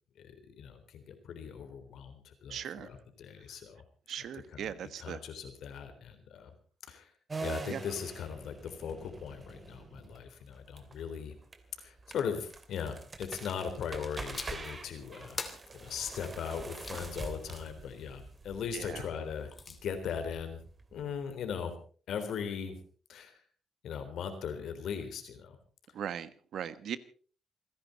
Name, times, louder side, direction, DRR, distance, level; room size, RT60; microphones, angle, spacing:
voice 1, 0.2-3.8 4.5-6.5 6.9-7.1 7.4-11.3 11.8-15.4 15.7-20.6 20.9-21.7 22.1-22.8 23.1-23.3 23.8-25.6, left 7 dB, 70° left, 8 dB, 3.6 m, -39 dB
voice 2, 2.5-2.9 4.1-5.2 7.7-7.8 18.7-19.0 25.9-27.0, right 9 dB, 70° right, 14 dB, 1.3 m, -39 dB
sound 1, 7.3-21.5, right 3 dB, 30° right, 2.6 m, -45 dB
sound 2, 14.3-14.7 15.4-17.1 19.2-19.8, left 4 dB, 35° left, 2.9 m, -43 dB
28.0 x 10.5 x 4.1 m, 0.41 s
cardioid pair, 90°, 0 cm